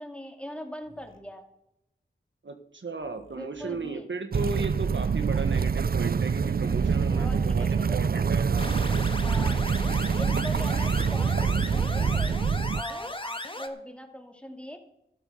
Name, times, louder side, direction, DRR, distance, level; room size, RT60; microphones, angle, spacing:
voice 1, 0.0-1.4 3.3-4.1 7.0-8.0 9.2-9.6 10.2-12.3 12.7-14.8, equal, 5° left, 4 dB, 2.6 m, -40 dB
sound 1, 0.8-1.2 3.0-3.9 5.2-5.5 7.3-8.3, left 1 dB, 80° left, 2.2 m, -56 dB
voice 2, 2.4-8.8, right 3 dB, 65° right, 6 dB, 1.6 m, -35 dB
sound 2, 4.3-12.8, right 6 dB, 45° right, 0.4 m, -25 dB
sound 3, 8.6-13.7, left 1 dB, 25° left, 1.7 m, -37 dB
12.5 x 11.0 x 5.6 m, 0.84 s
wide cardioid pair, 45°, 21 cm